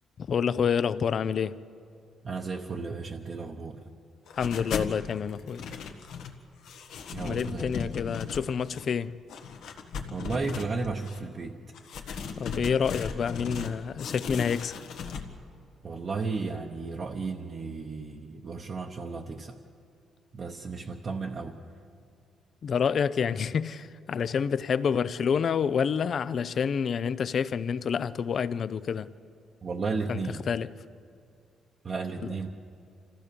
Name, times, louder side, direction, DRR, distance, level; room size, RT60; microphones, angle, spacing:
voice 1, 0.3-1.6 4.4-5.6 7.2-9.2 12.4-14.8 22.6-29.1 30.1-30.2 30.5-30.7 32.2-32.4, left 7 dB, 40° left, 0.5 m, -28 dB
voice 2, 2.2-3.9 7.1-7.7 10.1-11.6 15.8-19.6 20.3-21.6 29.6-30.4 31.8-32.5, right 4 dB, 30° right, 0.9 m, -34 dB
sound 1, 4.3-5.0 5.3-6.4 6.6-8.9 9.3-11.2 11.7-13.7 14.0-15.3, left 6 dB, 70° left, 1.6 m, -37 dB
27.0 x 15.0 x 6.9 m
cardioid pair, 165°, 0 cm